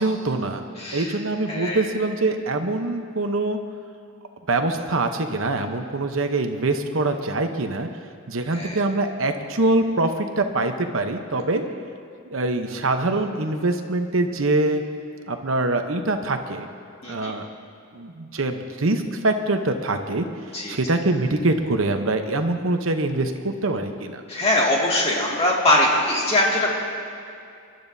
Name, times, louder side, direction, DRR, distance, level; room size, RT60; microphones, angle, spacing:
voice 1, 0.0-0.6 0.9-3.6 4.5-7.9 8.3-11.6 12.3-14.8 15.3-16.7 17.1-17.5 17.9-20.3 20.7-24.2, right 2 dB, 65° right, 6 dB, 0.9 m, -24 dB
voice 2, 0.8-1.1 1.5-1.9 8.5-8.8 17.0-17.3 20.5-20.8 24.3-26.7, left 1 dB, 30° left, -4 dB, 2.2 m, -22 dB
26.0 x 12.0 x 2.7 m, 2.4 s
head